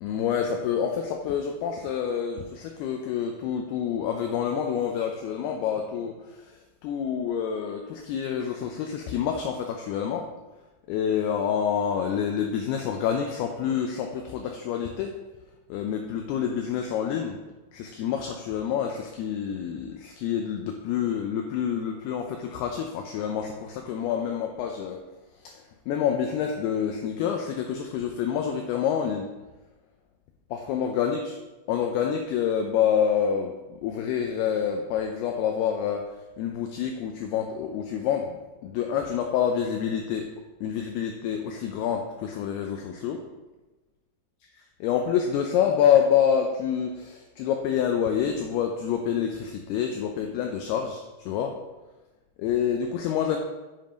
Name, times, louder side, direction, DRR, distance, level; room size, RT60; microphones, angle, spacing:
voice 1, 0.0-10.3 10.9-15.1 15.7-17.4 17.7-25.0 25.4-29.3 30.5-31.3 31.7-33.5 33.8-38.4 38.6-40.3 40.6-43.2 44.8-51.6 52.4-53.4, left 8 dB, 80° left, 4 dB, 2.3 m, -27 dB
7.7 x 5.5 x 5.1 m, 1.1 s
omnidirectional pair, 5.0 m